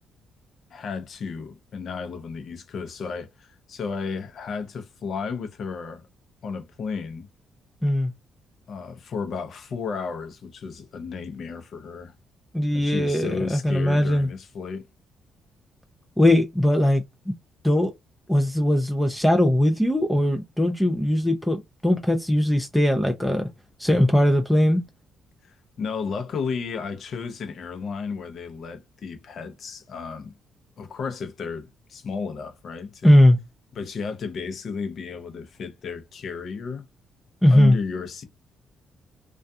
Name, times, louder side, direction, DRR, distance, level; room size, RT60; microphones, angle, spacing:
voice 1, 0.7-6.0 6.4-7.3 8.7-12.1 12.7-14.9 25.4-30.3 30.8-33.2 33.7-36.8 37.5-38.2, left 5 dB, 60° left, 0.6 m, -33 dB
voice 2, 12.5-14.3 16.2-17.3 17.6-17.9 18.3-23.5 23.8-24.8 33.0-33.4 37.4-37.8, left 1 dB, 5° left, 0.4 m, -20 dB
2.3 x 2.3 x 2.6 m
cardioid pair, 90°, 0 cm